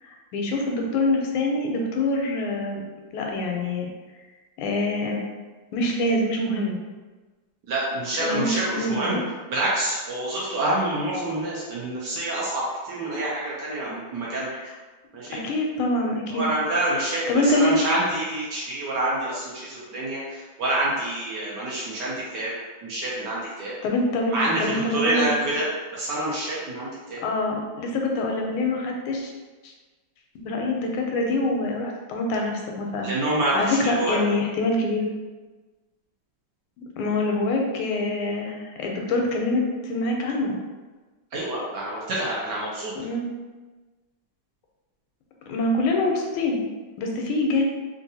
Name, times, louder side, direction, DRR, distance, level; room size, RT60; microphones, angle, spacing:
voice 1, 0.1-2.8 3.1-3.9 4.6-5.2 5.7-6.8 8.2-9.2 14.5-14.6 15.3-16.5 17.3-17.8 23.8-25.3 27.2-29.3 29.6-29.7 30.3-33.1 33.5-35.0 37.0-40.6 43.0-43.3 45.5-46.6 47.0-47.6, left 2 dB, 85° left, 1 dB, 1.5 m, -25 dB
voice 2, 7.7-9.2 9.5-14.5 15.1-15.4 16.3-22.5 22.8-23.7 24.3-25.7 25.9-27.2 33.0-34.2 41.3-42.9, right 1 dB, 70° right, -6 dB, 1.1 m, -27 dB
3.7 x 2.5 x 2.7 m, 1.3 s
omnidirectional pair, 2.3 m